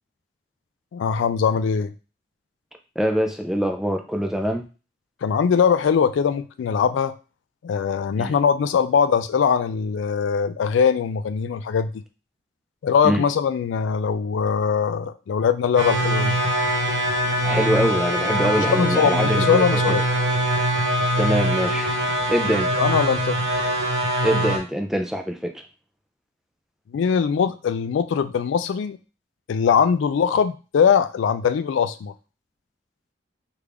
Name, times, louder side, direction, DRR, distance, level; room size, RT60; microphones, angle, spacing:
voice 1, 0.9-1.9 5.2-7.1 7.6-11.9 12.8-16.4 18.8-20.0 22.8-23.4 26.9-29.0 29.5-32.1, left 6 dB, 85° left, 11 dB, 0.3 m, -21 dB
voice 2, 3.0-4.6 8.2-8.4 13.0-13.2 17.4-20.0 21.2-21.9 22.3-22.8 24.2-25.6, equal, ahead, 4 dB, 0.3 m, -24 dB
sound 1, 15.8-24.6, equal, 85° right, 1.0 m, -22 dB
3.4 x 2.4 x 3.3 m, 0.33 s
head